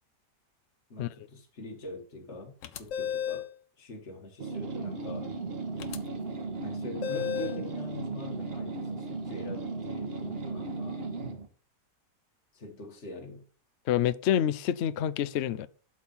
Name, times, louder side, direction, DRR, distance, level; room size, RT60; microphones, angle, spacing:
voice 1, 0.9-3.5 3.8-5.3 6.6-11.0 12.5-13.5, left 2 dB, 40° left, 1.8 m, -44 dB
sound 1, 2.6-3.5 5.8-6.0 7.0-7.6, left 9 dB, 60° left, 0.9 m, -33 dB
sound 2, 4.4-11.5, right 3 dB, 35° right, 1.6 m, -36 dB
voice 2, 13.9-15.7, left 10 dB, 90° left, 0.5 m, -27 dB
12.0 x 4.3 x 5.5 m
omnidirectional pair, 1.8 m